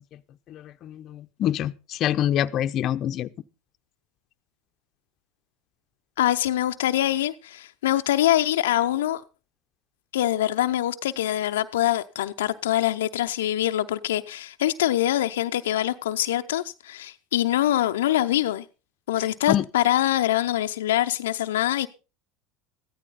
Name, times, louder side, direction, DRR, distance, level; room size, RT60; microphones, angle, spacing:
voice 1, 0.5-3.3 19.5-19.6, left 11 dB, 50° left, 0.8 m, -26 dB
voice 2, 6.2-9.2 10.1-18.6 19.1-21.9, left 13 dB, 85° left, 0.6 m, -24 dB
15.0 x 13.5 x 4.1 m
hypercardioid pair, 90°, 0 cm